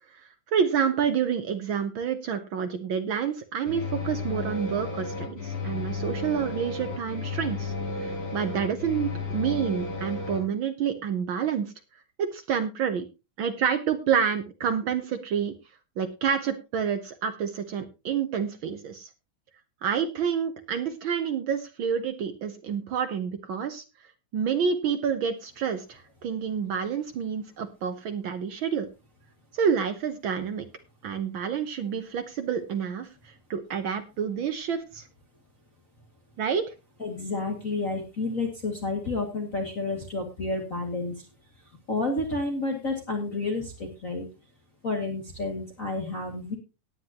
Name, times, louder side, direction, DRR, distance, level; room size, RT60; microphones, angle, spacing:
voice 1, 0.2-11.7 12.2-13.1 13.4-15.5 16.0-19.1 19.8-23.8 24.3-28.9 29.5-30.7 31.0-35.1 36.4-36.7, right 7 dB, 85° right, 6 dB, 1.0 m, -28 dB
sound 1, 3.7-10.4, left 3 dB, 65° left, 6.6 m, -33 dB
voice 2, 37.0-41.2 41.9-44.3 44.8-46.6, left 2 dB, 30° left, 1 dB, 2.2 m, -30 dB
17.5 x 9.7 x 2.9 m, 0.28 s
omnidirectional pair, 3.6 m